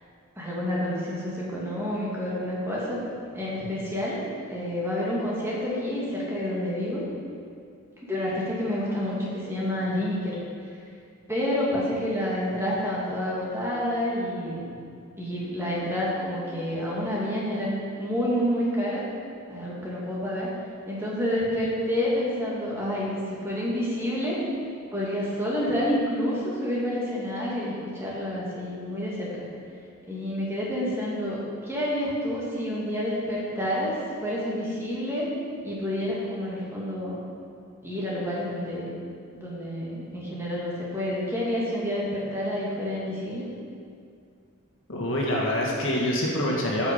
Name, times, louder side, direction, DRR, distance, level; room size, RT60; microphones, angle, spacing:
voice 1, 0.4-3.0 3.3-4.2 4.5-7.0 8.1-10.4 10.7-10.8 11.3-14.7 15.2-19.0 19.5-20.5 20.9-24.4 24.9-29.5 30.1-35.3 35.6-37.2 37.8-38.9 39.3-43.5, left 1 dB, 10° right, -6 dB, 2.1 m, -29 dB
voice 2, 44.9-46.9, left 1 dB, 55° left, -3 dB, 1.8 m, -25 dB
14.0 x 5.9 x 5.3 m, 2.4 s
head